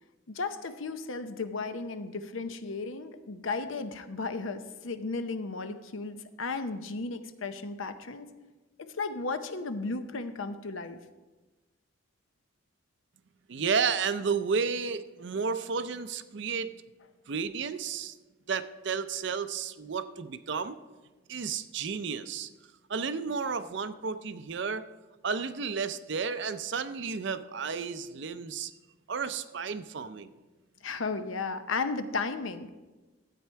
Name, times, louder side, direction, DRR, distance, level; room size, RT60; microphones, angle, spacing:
voice 1, 0.3-8.3 8.8-11.0 30.8-32.7, left 3 dB, 70° left, 10 dB, 0.7 m, -34 dB
voice 2, 13.5-16.7 17.3-18.1 18.5-20.8 21.3-22.5 22.9-24.8 25.2-28.7 29.1-30.3, right 5 dB, 55° right, 12 dB, 0.5 m, -32 dB
12.5 x 8.4 x 4.5 m, 1.2 s
head